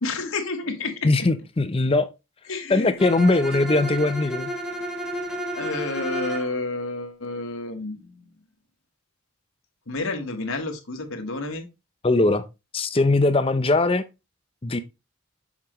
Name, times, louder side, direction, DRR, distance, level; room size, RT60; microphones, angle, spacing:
voice 1, 0.0-1.3 2.5-2.9 5.5-8.2 9.9-11.7, left 3 dB, 75° left, 1.3 m, -30 dB
voice 2, 1.0-2.1 2.7-4.5 12.0-12.4 12.7-14.0 14.6-14.8, left 2 dB, 25° left, 0.5 m, -20 dB
Bowed string instrument, 3.0-6.5, right 1 dB, 5° right, 0.7 m, -31 dB
7.2 x 4.9 x 3.0 m
head